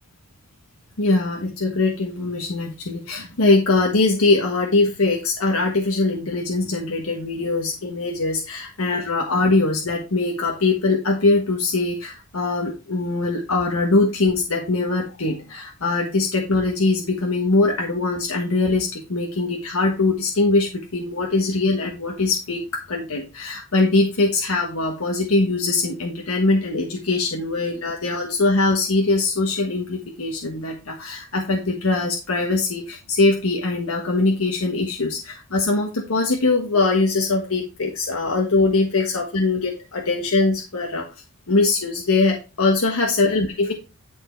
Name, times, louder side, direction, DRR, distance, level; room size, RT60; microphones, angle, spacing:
voice 1, 1.0-22.6 22.9-41.1 41.5-43.7, left 3 dB, 85° left, 1 dB, 1.4 m, -22 dB
10.5 x 4.7 x 4.5 m, 0.31 s
head